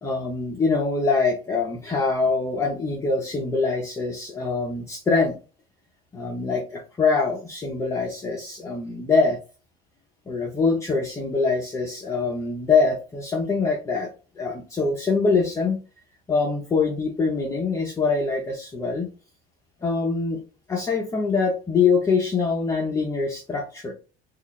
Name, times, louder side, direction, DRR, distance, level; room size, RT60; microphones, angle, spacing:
voice 1, 0.0-5.4 6.1-9.4 10.3-14.1 14.4-15.8 16.3-19.1 19.8-20.4 20.7-23.9, left 4 dB, 15° left, -2 dB, 0.6 m, -24 dB
3.0 x 2.4 x 3.7 m, 0.34 s
cardioid pair, 155°, 18 cm